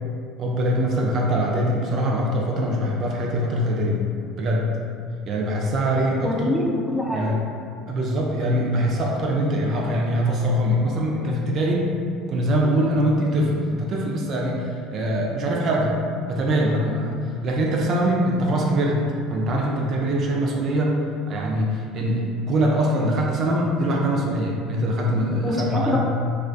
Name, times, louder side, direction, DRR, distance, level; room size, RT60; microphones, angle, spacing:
voice 1, 0.4-4.0 4.4-4.7 5.3-6.6 7.1-7.4 7.9-11.9 12.3-15.9 16.3-17.1 17.4-19.0 19.3-20.9 21.3-26.0, right 1 dB, 50° right, -2 dB, 0.4 m, -23 dB
voice 2, 6.2-7.4 25.4-26.0, left 1 dB, 10° left, -3 dB, 0.5 m, -25 dB
2.3 x 2.2 x 2.5 m, 2.3 s
hypercardioid pair, 70°, 0 cm